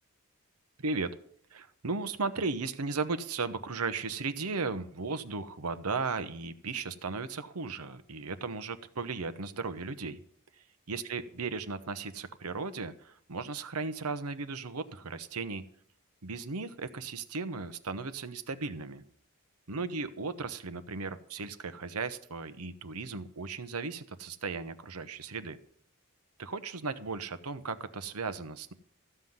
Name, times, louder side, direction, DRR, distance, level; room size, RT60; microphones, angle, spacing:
voice 1, 1.5-10.2 10.9-15.6 16.2-19.0 19.7-25.6 26.4-28.7, right 4 dB, 85° right, 12 dB, 1.0 m, -36 dB
14.5 x 5.7 x 9.4 m, 0.62 s
head